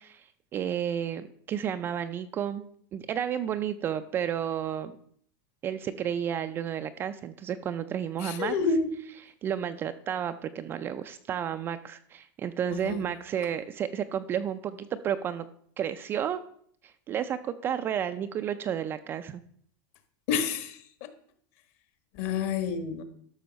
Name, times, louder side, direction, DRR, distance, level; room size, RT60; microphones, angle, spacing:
voice 1, 0.0-5.0 5.6-8.5 9.4-15.5 15.8-16.4 16.8-19.4, right 9 dB, 20° right, 9 dB, 0.3 m, -32 dB
voice 2, 8.2-8.9 12.7-13.0 20.3-21.1 22.1-23.0, left 5 dB, 45° left, 10 dB, 1.3 m, -29 dB
12.5 x 6.3 x 5.1 m, 0.63 s
supercardioid pair, 170°, 12 cm